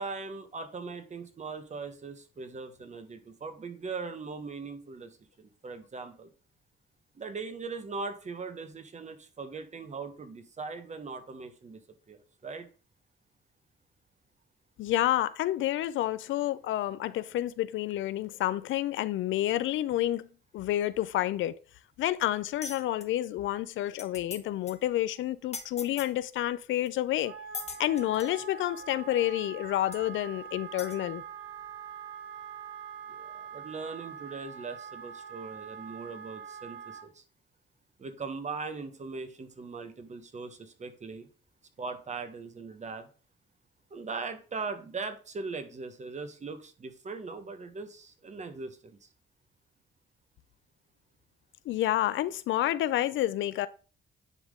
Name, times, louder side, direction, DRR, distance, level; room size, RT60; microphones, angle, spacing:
voice 1, 0.0-6.3 7.1-11.8 12.1-12.7 33.1-37.2 38.0-41.3 41.8-43.1 43.9-49.1, right 4 dB, 35° right, 1.2 m, -40 dB
voice 2, 14.8-20.3 20.5-21.6 22.0-27.3 27.8-31.2 51.7-53.7, left 13 dB, 75° left, 0.5 m, -29 dB
sound 1, 22.6-23.1 23.6-23.7 23.9-24.4 24.7-24.8 25.5-26.1 26.9-27.0 27.5-28.4 29.3-29.4 29.9-30.0 30.8-31.0, left 5 dB, 35° left, 1.0 m, -40 dB
Wind instrument woodwind instrument, 27.1-37.0, right 7 dB, 65° right, 3.0 m, -44 dB
9.8 x 3.6 x 3.7 m
cardioid pair, 90°, 20 cm